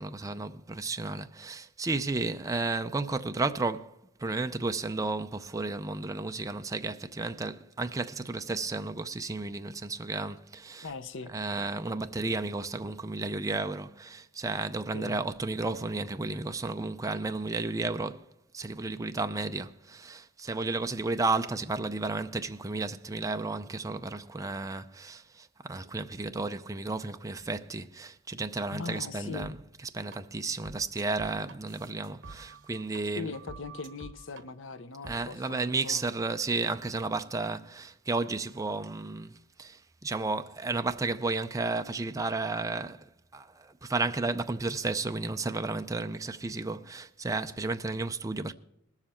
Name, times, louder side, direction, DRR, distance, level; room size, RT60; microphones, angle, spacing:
voice 1, 0.0-3.9 4.2-10.9 11.3-18.2 18.5-33.3 35.1-39.3 39.6-43.0 43.3-48.5, right 3 dB, 15° right, 0.5 m, -33 dB
voice 2, 10.8-11.3 14.9-15.2 28.7-29.6 33.2-36.0, left 4 dB, 65° left, 0.7 m, -40 dB
sound 1, 29.4-29.5 30.1-30.2 30.6-33.0 33.3-34.4 35.0-35.2, right 3 dB, 65° right, 1.3 m, -47 dB
20.5 x 7.3 x 4.3 m
head